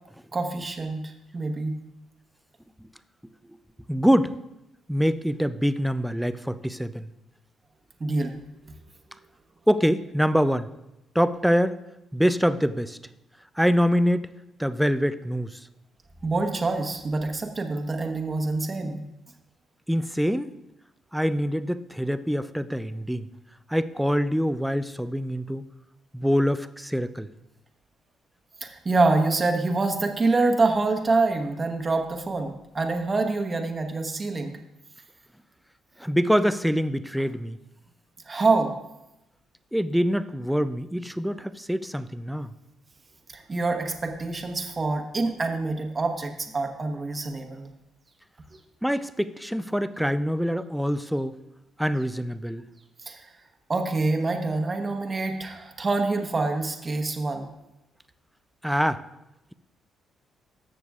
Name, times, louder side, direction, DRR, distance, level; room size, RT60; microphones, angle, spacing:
voice 1, 0.3-1.8 8.0-8.4 16.2-19.1 28.6-34.6 38.3-38.7 43.3-47.7 53.1-53.3 53.7-57.5, right 3 dB, 30° right, 5 dB, 1.0 m, -26 dB
voice 2, 3.9-4.4 4.9-7.1 9.7-10.7 11.2-11.8 12.1-13.0 13.6-14.3 14.6-15.6 19.9-20.5 21.1-23.3 23.7-25.6 26.1-27.3 36.0-37.6 39.7-42.5 48.8-51.3 51.8-52.6 58.6-59.0, equal, ahead, 12 dB, 0.4 m, -24 dB
13.5 x 6.7 x 2.4 m, 0.90 s
cardioid pair, 90°, 0 cm